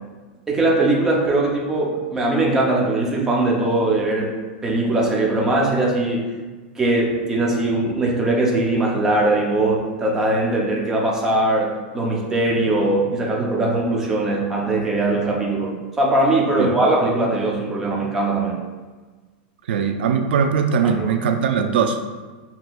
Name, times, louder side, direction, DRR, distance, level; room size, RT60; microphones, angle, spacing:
voice 1, 0.5-4.3 4.6-6.3 6.8-15.7 16.0-18.6 20.8-21.1, right 2 dB, 10° right, -3 dB, 0.5 m, -20 dB
voice 2, 19.7-22.0, right 6 dB, 90° right, 6 dB, 0.4 m, -20 dB
5.8 x 2.8 x 2.3 m, 1.3 s
supercardioid pair, 175°, 5 cm